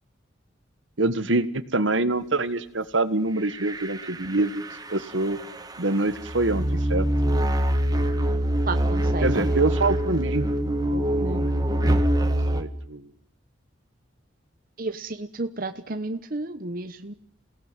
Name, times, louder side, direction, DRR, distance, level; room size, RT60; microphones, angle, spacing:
voice 1, 1.0-4.6 4.9-5.4 5.8-7.1 9.2-10.5 10.9-11.5 12.5-13.1, right 2 dB, 75° right, 13 dB, 1.6 m, -25 dB
sound 1, 3.5-12.6, right 1 dB, 20° right, 1.7 m, -24 dB
voice 2, 8.7-9.4 14.8-17.1, right 2 dB, 45° right, 8 dB, 1.0 m, -32 dB
28.0 x 17.5 x 9.3 m, 0.67 s
head